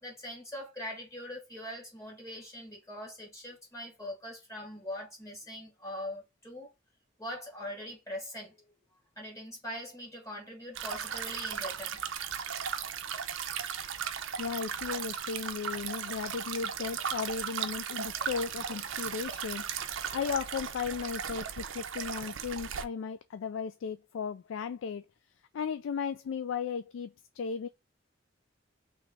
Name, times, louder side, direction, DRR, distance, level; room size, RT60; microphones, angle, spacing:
voice 1, 0.0-6.7 7.2-8.6 9.2-12.0, left 1 dB, 15° left, 1.5 m, -42 dB
sound 1, 10.8-22.8, right 8 dB, 85° right, 0.6 m, -36 dB
voice 2, 14.4-25.1 25.5-27.7, left 6 dB, 75° left, 0.3 m, -36 dB
3.2 x 3.1 x 3.6 m
head